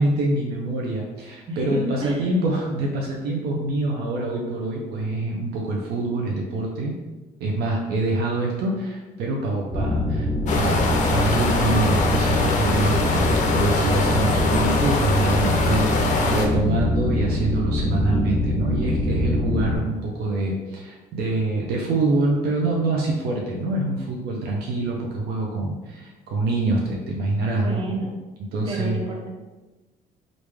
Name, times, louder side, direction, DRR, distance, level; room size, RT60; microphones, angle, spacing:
voice 1, 0.0-7.0 7.4-27.9 28.5-29.1, right 2 dB, 75° right, -1 dB, 0.6 m, -25 dB
voice 2, 1.5-2.3 27.5-28.2 28.7-29.3, right 1 dB, 30° right, -1 dB, 0.7 m, -30 dB
sound 1, 9.7-19.8, left 1 dB, 15° left, 0.9 m, -23 dB
sound 2, 10.5-16.5, left 3 dB, 45° left, 0.6 m, -24 dB
3.2 x 2.5 x 3.4 m, 1.2 s
cardioid pair, 110°, 17 cm